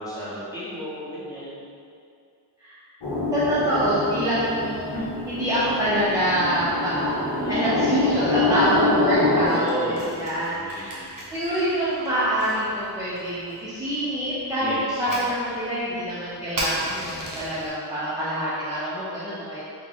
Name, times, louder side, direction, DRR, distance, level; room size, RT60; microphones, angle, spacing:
voice 1, 0.0-1.7 7.4-7.9 9.3-11.1 14.6-15.4, equal, 10° left, -11 dB, 1.2 m, -33 dB
sound 1, 3.0-9.5, left 2 dB, 90° left, 0.9 m, -25 dB
voice 2, 3.3-4.9 5.3-11.0 11.3-19.6, equal, 10° right, -12 dB, 0.7 m, -26 dB
Keyboard (musical), 4.9-8.6, right 2 dB, 40° left, 0.7 m, -40 dB
Fire, 9.3-17.7, right 1 dB, 50° right, 0.9 m, -37 dB
3.7 x 2.3 x 3.6 m, 2.4 s
wide cardioid pair, 95°, 41 cm